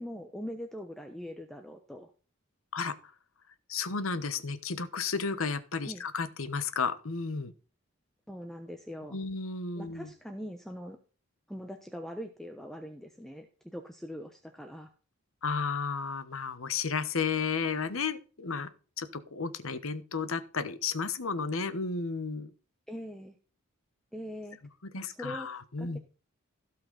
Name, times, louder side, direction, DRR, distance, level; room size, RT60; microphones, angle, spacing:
voice 1, 0.0-2.1 5.8-6.0 8.3-9.2 9.8-11.0 11.5-14.9 22.9-23.3 24.1-24.6 25.0-25.5 25.8-26.0, equal, ahead, 5 dB, 0.8 m, -42 dB
voice 2, 2.7-3.1 3.7-7.5 9.1-10.1 15.4-22.5 24.9-26.0, left 5 dB, 80° left, 13 dB, 1.1 m, -33 dB
16.5 x 5.8 x 4.1 m, 0.37 s
head